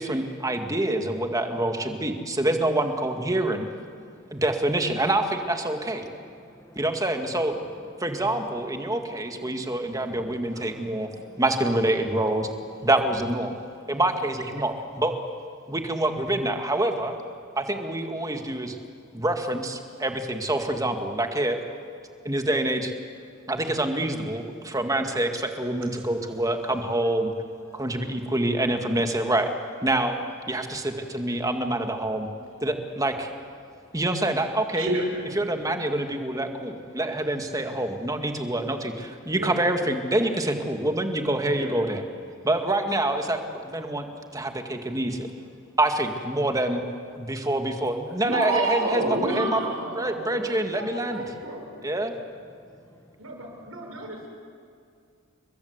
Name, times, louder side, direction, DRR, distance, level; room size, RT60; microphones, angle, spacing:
voice 1, 0.0-3.7 4.3-6.1 6.8-7.5 8.0-11.1 11.4-12.5 12.8-13.5 13.9-15.1 15.7-17.1 17.6-18.8 19.1-21.6 22.2-22.9 23.5-27.3 27.7-29.5 29.8-30.2 30.5-32.3 32.6-33.3 33.9-34.9 35.4-42.0 42.4-44.1 44.3-45.3 45.8-46.8 47.2-49.6 50.0-51.2 51.8-52.1, right 1 dB, 15° right, 5 dB, 2.0 m, -26 dB
voice 2, 3.9-4.4 4.9-5.0 6.0-8.2 8.6-11.4 13.5-13.8 43.9-44.0 45.0-45.1 45.7-45.8 51.3-51.4 52.5-53.2, equal, 10° left, 7 dB, 1.5 m, -52 dB
voice 3, 34.7-35.1 39.4-39.6 41.6-41.8 48.2-51.7 53.2-54.3, right 1 dB, 80° right, 2 dB, 6.1 m, -30 dB
30.0 x 22.5 x 8.2 m, 2.4 s
head